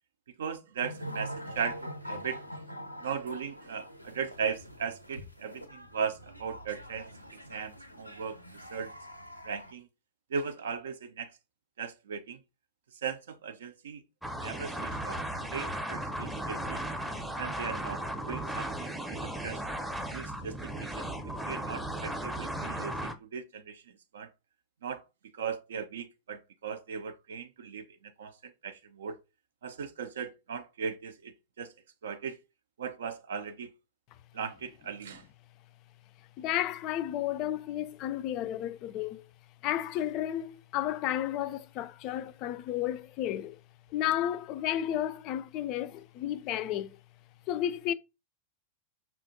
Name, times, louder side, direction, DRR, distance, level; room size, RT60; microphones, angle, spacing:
voice 1, 0.4-2.6 3.0-8.9 9.4-9.9 10.3-11.4 11.8-12.4 13.0-14.0 14.4-16.8 17.4-19.6 20.1-21.1 21.4-24.3 24.8-25.0 25.3-29.2 29.6-31.7 32.0-32.4 32.8-33.7 34.3-35.2, right 6 dB, 65° right, 0.4 m, -38 dB
sound 1, 0.8-9.7, equal, 90° left, 0.5 m, -44 dB
sound 2, 14.2-23.1, right 1 dB, 5° right, 0.6 m, -36 dB
voice 2, 36.4-39.2 39.6-43.6 43.9-47.0 47.5-47.9, left 12 dB, 40° left, 0.3 m, -32 dB
5.5 x 2.4 x 2.6 m
figure-of-eight pair, 90°, 0 cm